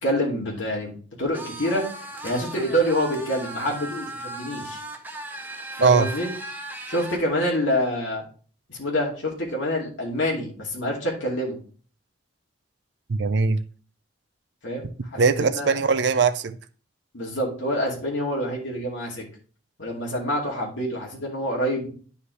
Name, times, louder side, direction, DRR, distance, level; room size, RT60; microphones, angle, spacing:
voice 1, 0.0-1.8 2.2-4.8 5.8-6.3 6.9-8.2 8.7-11.6 14.6-15.2 15.6-15.7 17.1-19.2 19.8-21.9, equal, 70° left, 2.4 m, -26 dB
sound 1, 1.3-7.2, right 1 dB, 10° right, 0.7 m, -37 dB
voice 2, 13.1-13.6 15.2-16.6, right 4 dB, 60° right, 0.5 m, -20 dB
9.5 x 5.6 x 3.2 m
head